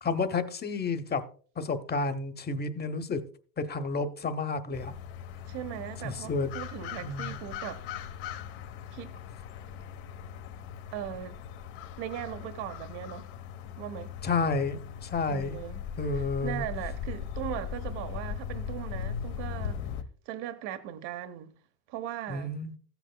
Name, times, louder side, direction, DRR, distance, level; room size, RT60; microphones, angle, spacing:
voice 1, 0.0-1.2 1.6-3.2 3.6-4.9 6.0-6.5 7.0-7.4 14.2-15.6 16.0-16.6 22.3-22.7, left 4 dB, 20° left, 0.9 m, -30 dB
sound 1, 4.7-20.0, left 8 dB, 65° left, 1.1 m, -39 dB
voice 2, 5.5-7.8 8.9-9.2 10.9-11.4 12.0-13.3 13.8-14.1 15.3-19.8 20.3-21.6 21.9-22.6, right 11 dB, 55° right, 1.1 m, -39 dB
15.0 x 8.1 x 2.2 m
supercardioid pair, 100°, 48 cm